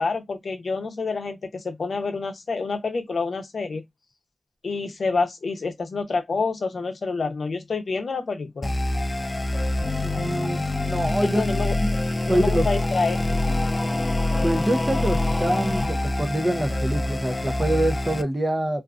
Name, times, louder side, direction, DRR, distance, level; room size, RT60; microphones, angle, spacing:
voice 1, 0.0-3.8 4.6-8.7 11.2-11.8 12.3-13.4, left 4 dB, 75° left, 0.6 m, -28 dB
sound 1, 8.6-18.2, left 1 dB, 35° left, 0.3 m, -25 dB
voice 2, 10.0-11.4 12.3-12.6 14.4-18.8, right 1 dB, 25° right, 0.6 m, -25 dB
2.5 x 2.3 x 2.3 m
cardioid pair, 40°, 0 cm